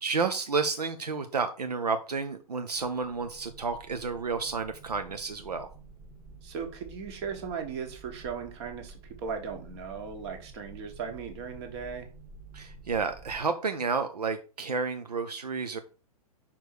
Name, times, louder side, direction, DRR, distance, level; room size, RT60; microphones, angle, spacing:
voice 1, 0.0-5.7 12.5-15.8, right 4 dB, 80° right, 8 dB, 0.7 m, -31 dB
sound 1, 2.7-13.4, right 3 dB, 25° right, 1.6 m, -50 dB
voice 2, 6.4-12.1, right 6 dB, 45° right, 6 dB, 1.6 m, -37 dB
5.4 x 4.5 x 4.7 m, 0.36 s
figure-of-eight pair, 115°, 20 cm